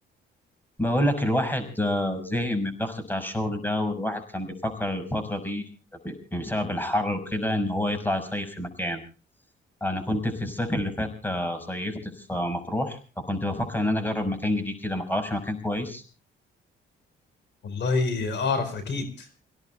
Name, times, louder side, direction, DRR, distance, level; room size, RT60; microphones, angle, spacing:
voice 1, 0.8-5.6 6.0-9.0 9.8-16.0, left 1 dB, 10° left, 10 dB, 6.1 m, -28 dB
voice 2, 17.6-19.3, left 4 dB, 65° left, 10 dB, 4.5 m, -27 dB
29.5 x 17.5 x 2.4 m, 0.36 s
cardioid pair, 90°, 20 cm